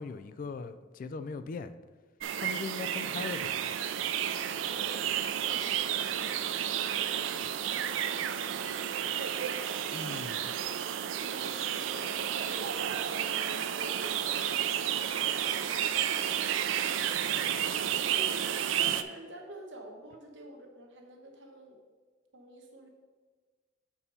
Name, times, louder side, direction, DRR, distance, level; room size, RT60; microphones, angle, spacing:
voice 1, 0.0-1.7 2.4-3.8 9.9-10.5, left 4 dB, 45° left, 12 dB, 0.3 m, -39 dB
Hungary Meadow Morning Birds, 2.2-19.0, right 9 dB, 85° right, 0.4 m, -31 dB
voice 2, 4.6-5.7 6.1-7.0 7.7-8.3 11.2-14.3 18.1-21.8 22.3-22.9, right 1 dB, 70° right, 2 dB, 1.2 m, -48 dB
6.8 x 4.2 x 5.5 m, 1.4 s
head